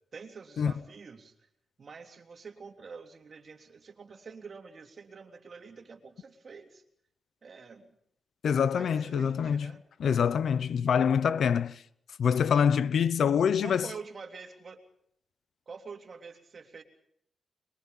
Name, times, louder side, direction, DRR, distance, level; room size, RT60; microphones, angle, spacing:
voice 1, 0.1-1.3 1.8-6.8 7.4-7.9 8.7-9.8 13.6-14.8 15.7-16.8, right 5 dB, 50° right, 3.3 m, -46 dB
voice 2, 8.4-9.7 10.0-11.8 12.2-13.9, left 7 dB, 75° left, 0.8 m, -25 dB
24.0 x 23.0 x 5.6 m
cardioid pair, 95°, 0 cm